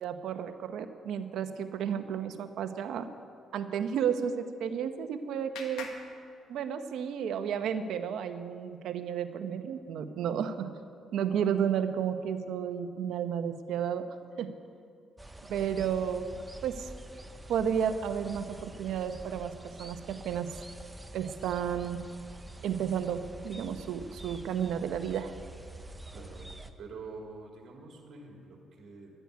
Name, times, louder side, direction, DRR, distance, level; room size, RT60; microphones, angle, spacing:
voice 1, 0.0-3.1 3.5-5.9 6.5-10.7 11.1-14.1 14.4-14.5 15.5-16.3 16.6-16.9 17.5-20.5 21.1-22.0 22.6-25.3, right 8 dB, 80° right, 8 dB, 0.9 m, -32 dB
Clapping, 4.4-7.1, left 5 dB, 90° left, 1.6 m, -48 dB
sound 1, 15.2-26.7, right 1 dB, 15° right, 0.9 m, -47 dB
voice 2, 26.1-26.5 26.8-29.1, right 3 dB, 60° right, 0 dB, 3.0 m, -46 dB
12.0 x 9.2 x 9.4 m, 2.5 s
cardioid pair, 90°, 0 cm